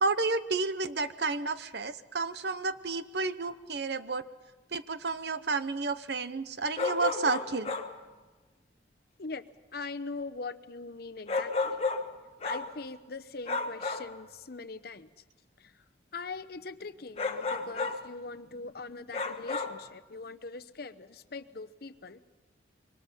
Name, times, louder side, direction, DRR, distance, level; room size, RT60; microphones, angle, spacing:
voice 1, 0.0-4.2 4.7-7.7, right 3 dB, 60° right, 12 dB, 0.9 m, -31 dB
sound 1, 6.8-8.0 11.3-12.8 13.5-14.2 17.2-18.1 19.1-19.9, left 3 dB, 35° left, 1.3 m, -32 dB
voice 2, 9.7-11.8 12.4-15.1 15.6-15.8 16.1-22.2, left 3 dB, 55° left, 10 dB, 0.9 m, -41 dB
26.0 x 23.5 x 5.6 m, 1.2 s
head